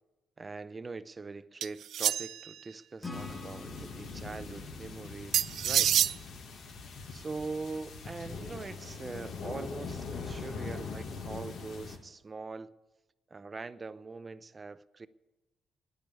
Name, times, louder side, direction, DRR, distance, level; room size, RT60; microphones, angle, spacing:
voice 1, 0.4-6.0 7.1-12.7 13.3-15.1, right 3 dB, 30° right, 0.6 m, -42 dB
sound 1, 1.6-2.5 5.3-6.2, right 10 dB, 70° right, 0.3 m, -27 dB
Acoustic guitar / Strum, 3.0-6.6, left 2 dB, 20° left, 1.8 m, -47 dB
sound 2, 3.1-12.0, left 4 dB, 70° left, 1.7 m, -42 dB
10.5 x 9.6 x 8.5 m
cardioid pair, 90°, 0 cm